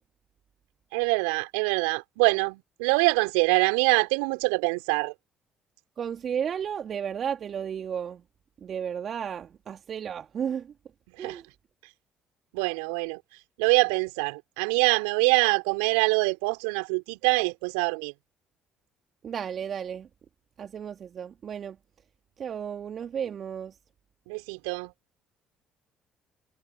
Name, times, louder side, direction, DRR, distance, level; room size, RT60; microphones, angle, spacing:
voice 1, 0.9-5.1 11.2-11.4 12.5-13.2 13.6-18.1 24.3-24.9, right 33 dB, 75° right, 4.9 m, -24 dB
voice 2, 6.0-8.2 8.6-10.7 11.2-11.4 19.2-20.1 20.6-21.8 22.4-23.7, right 8 dB, 50° right, 2.6 m, -33 dB
hypercardioid pair, 50°, 0 cm